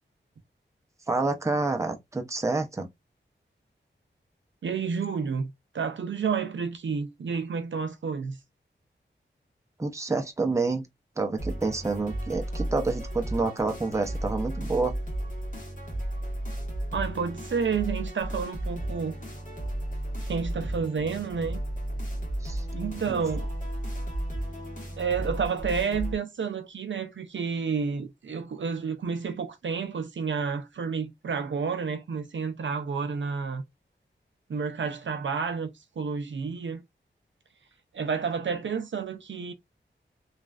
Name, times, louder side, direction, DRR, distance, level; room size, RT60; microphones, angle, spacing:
voice 1, 1.1-2.9 9.8-10.9 11.2-14.9 22.4-22.6 23.1-23.2, right 3 dB, 15° right, 0.6 m, -28 dB
voice 2, 4.6-8.4 16.9-19.1 20.3-21.6 22.7-23.5 25.0-33.6 34.5-35.7 36.0-36.8 37.9-39.5, right 5 dB, 70° right, 0.5 m, -30 dB
sound 1, 11.4-26.2, right 1 dB, 40° left, 1.4 m, -34 dB
3.0 x 2.4 x 2.4 m
wide cardioid pair, 70°, 20 cm